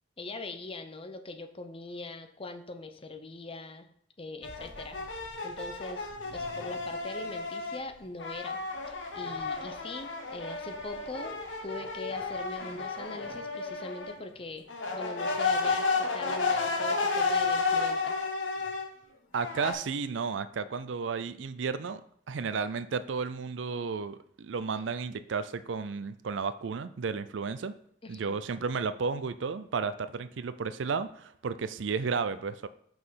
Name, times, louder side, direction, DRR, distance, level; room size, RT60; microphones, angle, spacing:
voice 1, 0.2-3.9 4.2-8.6 8.9-14.6 14.9-18.2 28.0-28.4, left 2 dB, 30° left, 7 dB, 0.7 m, -42 dB
sound 1, 4.4-7.8 8.2-14.2 14.7-18.9 19.4-19.7, left 4 dB, 70° left, 1.2 m, -32 dB
voice 2, 19.3-22.0 22.3-27.7 28.1-32.7, right 5 dB, 70° right, 14 dB, 0.5 m, -33 dB
6.0 x 5.4 x 5.7 m, 0.65 s
head